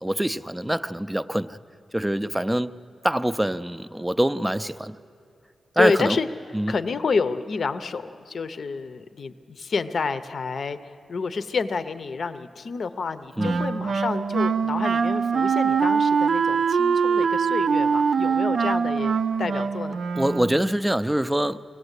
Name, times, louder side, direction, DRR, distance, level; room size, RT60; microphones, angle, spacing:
voice 1, 0.0-1.6 1.9-2.7 3.0-4.9 5.8-6.2 6.5-6.7 13.4-13.6 20.2-21.6, right 1 dB, 10° right, 0.5 m, -24 dB
voice 2, 5.8-6.3 6.7-20.0, left 4 dB, 60° left, 0.6 m, -29 dB
Wind instrument woodwind instrument, 13.4-20.8, right 6 dB, 65° right, 0.5 m, -23 dB
24.5 x 17.5 x 8.1 m
wide cardioid pair, 120°, 0 cm